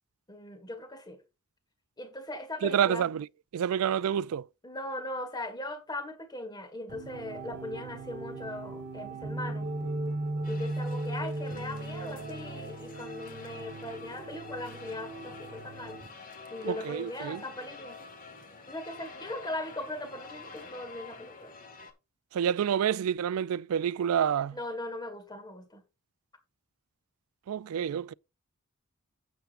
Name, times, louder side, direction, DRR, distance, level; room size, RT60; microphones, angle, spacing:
voice 1, 0.3-1.2 2.0-3.0 4.6-9.7 10.5-16.0 16.5-18.0 18.7-21.5 24.5-25.8, left 1 dB, 20° left, 1.6 m, -39 dB
voice 2, 2.6-3.3 3.5-4.4 16.6-17.4 22.3-24.6 27.5-28.1, right 8 dB, 75° right, 0.3 m, -28 dB
sound 1, 6.9-16.1, right 2 dB, 55° right, 1.4 m, -37 dB
sound 2, 10.4-21.9, left 4 dB, 40° left, 1.7 m, -48 dB
11.5 x 8.2 x 2.5 m
head